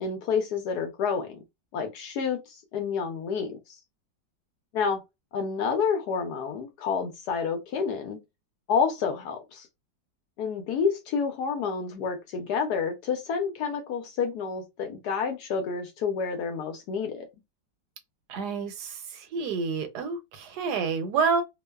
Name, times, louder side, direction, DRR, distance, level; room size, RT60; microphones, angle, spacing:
voice 1, 0.0-1.4 1.7-3.8 4.7-5.0 5.3-8.2 8.7-9.7 10.4-17.3, left 6 dB, 70° left, 1.0 m, -29 dB
voice 2, 18.3-21.4, right 5 dB, 75° right, 1.1 m, -28 dB
2.9 x 2.0 x 2.2 m
omnidirectional pair, 1.9 m